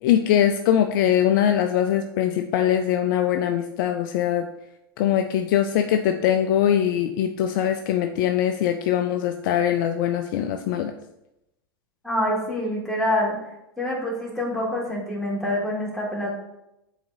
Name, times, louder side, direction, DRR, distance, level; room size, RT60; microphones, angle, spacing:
voice 1, 0.0-4.5 5.0-10.9, left 10 dB, 55° left, 7 dB, 0.4 m, -22 dB
voice 2, 12.0-13.4 13.8-16.3, left 1 dB, ahead, -5 dB, 2.0 m, -26 dB
8.6 x 4.0 x 2.7 m, 0.89 s
hypercardioid pair, 95°, 13 cm